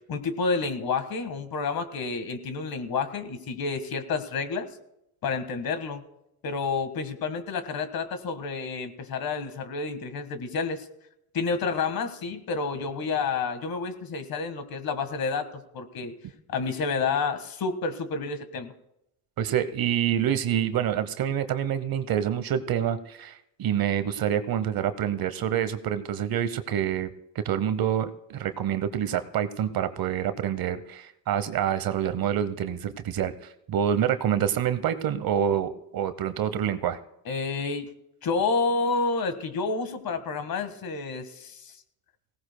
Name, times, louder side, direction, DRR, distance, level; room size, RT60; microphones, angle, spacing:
voice 1, 0.1-4.7 5.2-6.0 6.4-10.9 11.3-16.1 16.5-18.7 37.2-37.9 38.2-41.7, left 4 dB, 45° left, 10 dB, 1.7 m, -29 dB
voice 2, 19.4-27.1 27.3-37.0, right 9 dB, 45° right, 12 dB, 1.0 m, -27 dB
19.5 x 17.0 x 2.2 m, 0.81 s
supercardioid pair, 95°, 48 cm